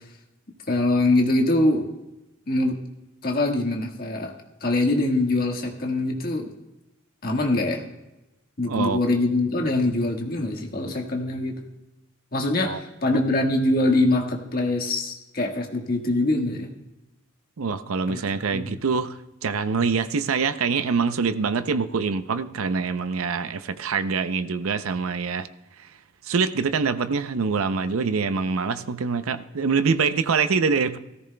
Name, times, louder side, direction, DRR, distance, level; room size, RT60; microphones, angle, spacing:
voice 1, 0.7-1.9 2.5-2.8 3.2-4.3 4.6-6.5 7.2-7.8 8.6-11.6 12.3-16.7 18.1-18.2 18.5-18.8, left 2 dB, 45° left, 2 dB, 1.5 m, -23 dB
voice 2, 8.7-9.0 12.6-12.8 13.1-13.2 17.6-25.5 26.3-31.0, right 5 dB, 85° right, 12 dB, 0.5 m, -25 dB
16.5 x 14.0 x 2.2 m, 0.97 s
head